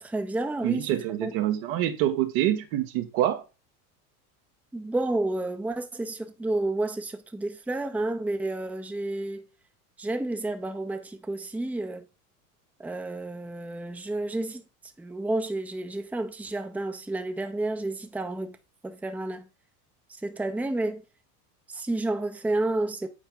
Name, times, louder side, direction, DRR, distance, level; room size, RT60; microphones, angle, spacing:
voice 1, 0.0-0.9 1.2-1.3 4.7-9.5 10.0-12.0 12.8-14.6 15.0-18.6 18.8-19.5 20.2-21.0 21.7-23.1, right 2 dB, 5° right, 0.8 m, -30 dB
voice 2, 0.6-3.4, right 13 dB, 70° right, 1.4 m, -26 dB
8.3 x 4.5 x 3.8 m
hypercardioid pair, 95°, 45 cm